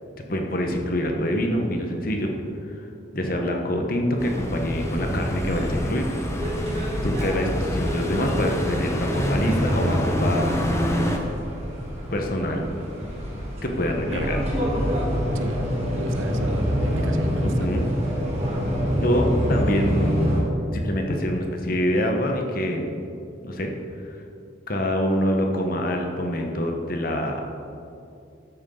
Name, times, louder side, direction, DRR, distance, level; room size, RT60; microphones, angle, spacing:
voice 1, 0.3-2.3 2.7-2.8 3.1-6.1 7.0-10.5 12.1-12.7 13.6-14.4 14.8-14.9 17.4-17.8 19.0-20.1 20.7-22.9 23.4-23.7 24.0-24.2 24.7-27.4, equal, 50° left, 2 dB, 1.2 m, -25 dB
sound 1, 4.2-11.2, equal, 15° left, 0.8 m, -27 dB
sound 2, 4.8-20.4, equal, 35° right, 2.0 m, -27 dB
voice 2, 14.0-14.4 15.1-17.7, right 2 dB, 90° right, 8 dB, 0.8 m, -36 dB
12.5 x 9.1 x 3.9 m, 2.6 s
head